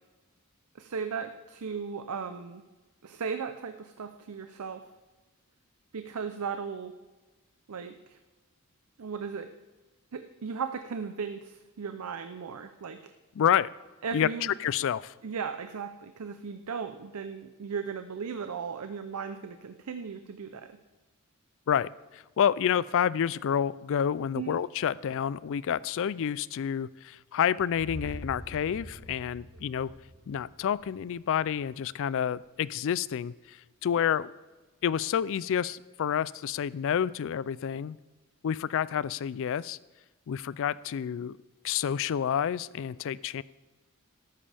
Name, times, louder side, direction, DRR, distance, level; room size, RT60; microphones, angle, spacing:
voice 1, 0.7-2.6 3.0-4.8 5.9-6.9 7.7-8.2 9.0-9.5 10.1-13.1 14.0-14.5 15.2-20.8 24.3-24.6, right 6 dB, 90° right, 8 dB, 0.6 m, -36 dB
voice 2, 13.4-13.7 14.1-15.1 21.7-29.9 30.3-34.3 34.8-38.0 38.4-39.8 40.3-41.4 41.6-43.4, left 8 dB, 60° left, 20 dB, 0.3 m, -29 dB
sound 1, 27.7-31.7, right 1 dB, 5° right, 2.9 m, -45 dB
14.0 x 12.5 x 3.4 m, 1.2 s
head